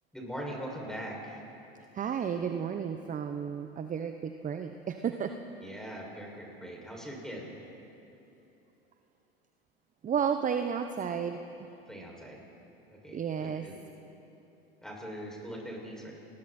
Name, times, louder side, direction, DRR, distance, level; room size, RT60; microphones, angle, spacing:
voice 1, 0.1-1.4 5.6-7.5 11.8-12.4 12.9-13.8 14.8-16.1, equal, ahead, -2 dB, 6.3 m, -41 dB
voice 2, 1.9-5.3 10.0-11.4 13.1-13.7, right 7 dB, 25° right, 7 dB, 1.0 m, -32 dB
29.0 x 21.5 x 4.4 m, 2.9 s
hypercardioid pair, 90°, 30 cm